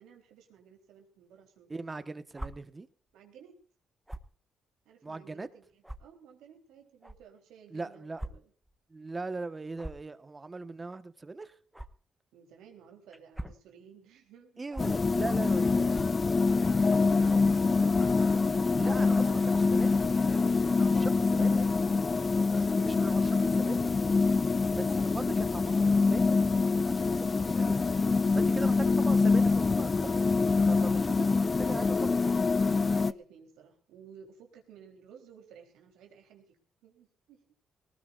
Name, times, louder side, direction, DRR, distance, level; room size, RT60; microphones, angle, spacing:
voice 1, 0.0-2.0 3.1-3.6 4.9-8.5 12.3-14.6 16.5-17.9 20.8-21.7 23.2-23.9 24.3-24.9 28.5-28.9 30.1-30.5 30.8-31.4 32.7-37.5, right 7 dB, 90° right, 3.8 m, -55 dB
voice 2, 1.7-2.9 5.0-5.5 7.7-8.4 8.9-11.6 14.6-16.0 18.7-21.6 22.7-23.9 24.7-27.8 28.3-32.2, right 3 dB, 25° right, 1.4 m, -40 dB
sound 1, 2.3-2.5 4.1-4.3 5.0-5.1 5.8-6.0 7.0-7.2 8.2-8.3 8.6-8.8 9.7-10.1 11.7-11.9 13.1-13.6 14.7-14.8 15.9-16.1 16.9-17.1 18.0-18.2 19.0-19.3 19.9-20.2, right 1 dB, 5° right, 1.3 m, -41 dB
sound 2, 14.8-33.1, left 4 dB, 30° left, 0.6 m, -25 dB
19.5 x 19.0 x 2.6 m
cardioid pair, 90°, 0 cm